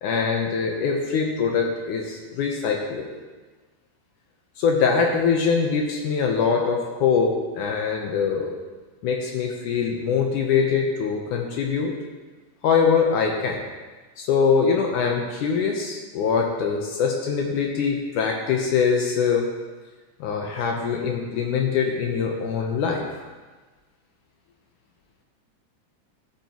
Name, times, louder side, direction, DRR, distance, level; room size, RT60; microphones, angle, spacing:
voice 1, 0.0-3.0 4.6-8.5 9.0-11.9 12.6-13.6 14.2-19.5 20.2-23.2, left 5 dB, 75° left, 1 dB, 2.2 m, -23 dB
14.5 x 8.6 x 3.0 m, 1.3 s
omnidirectional pair, 3.9 m